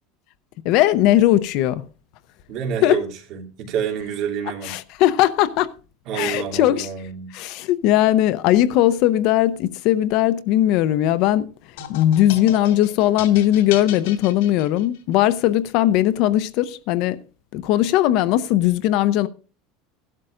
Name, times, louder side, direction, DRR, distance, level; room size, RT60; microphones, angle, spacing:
voice 1, 0.6-1.8 2.8-3.0 4.6-5.7 6.1-6.9 7.3-11.5 11.9-17.2 17.5-19.3, left 13 dB, 50° left, 0.6 m, -19 dB
voice 2, 2.5-4.7 6.1-7.3, right 7 dB, 45° right, 2.8 m, -28 dB
sound 1, 11.8-15.2, left 8 dB, 90° left, 2.3 m, -36 dB
16.5 x 12.0 x 2.5 m
supercardioid pair, 170°, 0 cm